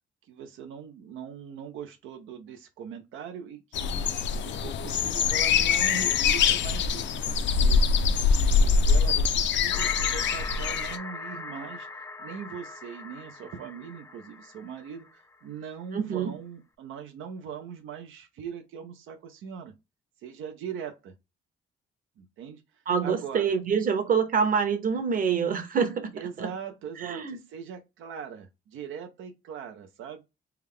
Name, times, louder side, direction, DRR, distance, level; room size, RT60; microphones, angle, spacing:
voice 1, 0.2-4.1 4.4-11.9 12.2-19.7 20.2-21.1 22.2-23.5 24.3-24.6 26.1-30.2, right 7 dB, 85° right, 0.6 m, -41 dB
sound 1, 3.7-11.0, left 5 dB, 65° left, 0.5 m, -24 dB
sound 2, 9.7-15.4, left 3 dB, 15° left, 0.5 m, -40 dB
voice 2, 15.9-16.3 22.9-26.1 26.4-26.5 27.0-27.4, right 6 dB, 45° right, 1.0 m, -26 dB
3.4 x 2.2 x 3.5 m
cardioid pair, 90°, 20 cm